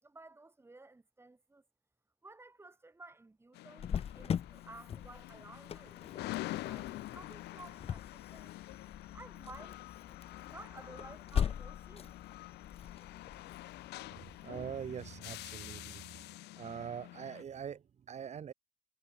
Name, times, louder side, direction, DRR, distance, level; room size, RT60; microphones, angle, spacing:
voice 1, 0.0-1.6 2.2-8.5 9.1-9.8 10.5-12.2, right 2 dB, 15° right, 5.9 m, -54 dB
sound 1, 3.5-17.4, left 18 dB, 85° left, 3.0 m, -47 dB
Cricket, 3.8-15.2, left 8 dB, 35° left, 0.7 m, -41 dB
voice 2, 14.4-16.3 16.6-18.5, right 8 dB, 40° right, 1.6 m, -43 dB
cardioid pair, 110°, 17 cm